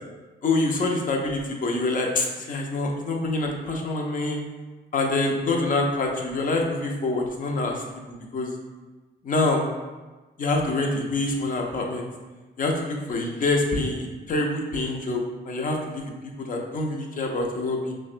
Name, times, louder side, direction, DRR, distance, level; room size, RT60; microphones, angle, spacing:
voice 1, 0.4-4.4 4.9-7.8 8.3-8.5 9.2-9.6 10.4-12.1 12.6-16.0 16.4-17.9, left 2 dB, 45° left, 1 dB, 0.7 m, -26 dB
5.7 x 2.2 x 2.5 m, 1.2 s
cardioid pair, 90°, 20 cm